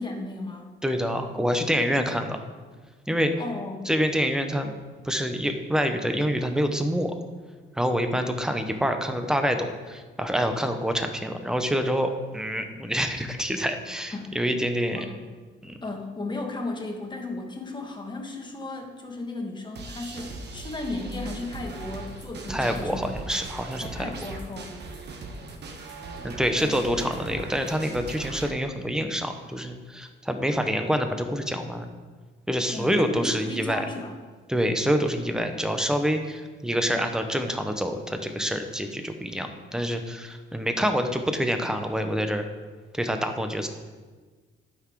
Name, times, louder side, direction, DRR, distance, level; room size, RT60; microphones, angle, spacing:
voice 1, 0.0-0.7 3.4-3.9 14.1-14.4 14.9-15.2 15.8-23.3 23.8-24.8 26.6-27.1 32.7-34.1, left 2 dB, 25° left, 2 dB, 1.8 m, -35 dB
voice 2, 0.8-2.4 3.1-3.3 3.8-4.7 5.0-7.1 7.7-15.0 15.6-15.8 22.5-24.1 26.2-31.8 32.5-33.8 34.5-42.4 42.9-43.7, equal, 5° right, 6 dB, 1.1 m, -26 dB
sound 1, 19.8-28.5, right 3 dB, 60° right, 1.5 m, -39 dB
11.5 x 6.2 x 4.8 m, 1.4 s
cardioid pair, 90°, 20 cm